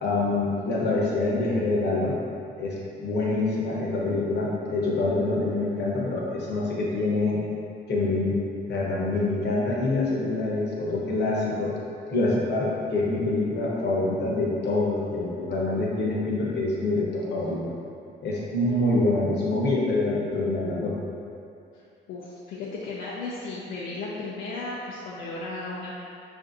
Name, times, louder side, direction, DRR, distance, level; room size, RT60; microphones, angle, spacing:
voice 1, 0.0-2.2 2.6-7.4 7.9-8.4 8.7-11.7 12.1-17.7 18.2-20.9, left 2 dB, 60° left, -4 dB, 0.9 m, -26 dB
voice 2, 22.1-26.0, left 3 dB, 75° left, -6 dB, 0.5 m, -35 dB
5.0 x 2.6 x 2.6 m, 2.6 s
cardioid pair, 90°, 20 cm